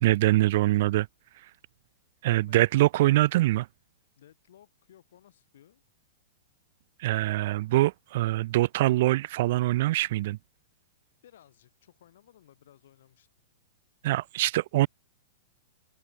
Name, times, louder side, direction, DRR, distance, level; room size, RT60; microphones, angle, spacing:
voice 1, 0.0-1.1 2.2-3.7 7.0-10.4 14.0-14.9, right 16 dB, 60° right, 0.4 m, -24 dB
voice 2, 4.2-5.8 11.2-13.3, left 11 dB, 70° left, 6.4 m, -58 dB
hypercardioid pair, 125°, 0 cm